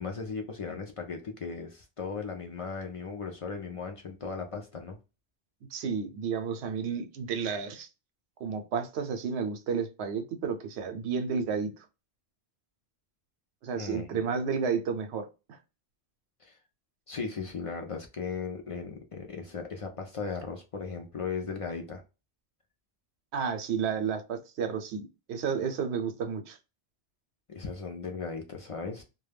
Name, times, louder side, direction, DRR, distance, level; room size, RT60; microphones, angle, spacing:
voice 1, 0.0-5.0 13.7-14.2 16.4-16.6 17.1-22.0 27.5-29.0, left 5 dB, 60° left, 0.3 m, -37 dB
voice 2, 5.7-7.9 8.4-11.7 13.6-15.6 23.3-26.6, right 6 dB, 85° right, 0.9 m, -32 dB
2.2 x 2.1 x 3.2 m
omnidirectional pair, 1.1 m